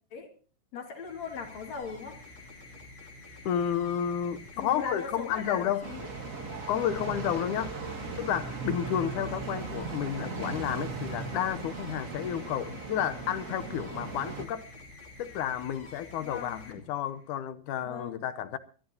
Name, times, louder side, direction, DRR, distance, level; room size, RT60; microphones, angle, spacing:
voice 1, 0.7-2.2 4.6-6.1 7.9-8.2 16.2-16.6 17.8-18.2, left 5 dB, 60° left, 3.3 m, -39 dB
sound 1, 0.9-17.4, left 2 dB, 40° left, 3.3 m, -49 dB
voice 2, 3.5-5.8 6.7-7.7 8.2-14.6 15.2-18.6, left 9 dB, 75° left, 2.3 m, -31 dB
sound 2, 5.8-14.5, right 4 dB, 50° right, 1.0 m, -38 dB
24.0 x 14.0 x 2.8 m
omnidirectional pair, 3.7 m